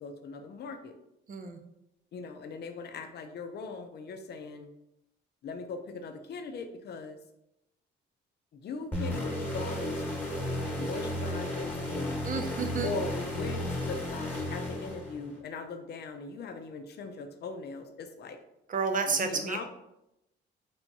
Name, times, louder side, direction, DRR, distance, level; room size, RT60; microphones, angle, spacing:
voice 1, 0.0-0.9 2.1-4.7 5.4-7.2 8.5-10.3 10.8-12.2 12.8-18.4 19.1-19.6, left 4 dB, 55° left, 7 dB, 0.6 m, -40 dB
voice 2, 1.3-1.6 12.2-12.9 18.7-19.6, right 5 dB, 40° right, 6 dB, 0.6 m, -31 dB
sound 1, 8.9-15.4, left 1 dB, 10° left, 1.2 m, -34 dB
4.5 x 3.4 x 2.7 m, 0.85 s
cardioid pair, 90°, 20 cm